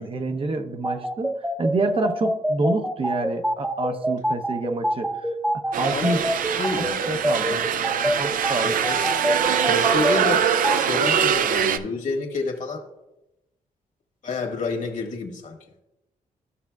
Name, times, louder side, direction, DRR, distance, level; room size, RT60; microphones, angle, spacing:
voice 1, 0.0-5.3 5.8-6.2 6.8-7.6 8.0-8.7, right 2 dB, 40° right, 6 dB, 0.7 m, -27 dB
sound 1, 0.8-10.7, equal, 5° right, 0.7 m, -25 dB
sound 2, 5.7-11.8, right 8 dB, 75° right, 0.5 m, -23 dB
voice 2, 5.9-6.2 6.6-7.0 7.5-7.7 8.6-9.2 9.7-10.5 10.8-12.8 14.2-15.6, left 3 dB, 65° left, 2 dB, 1.7 m, -29 dB
14.0 x 6.0 x 2.3 m, 0.94 s
cardioid pair, 100°, 14 cm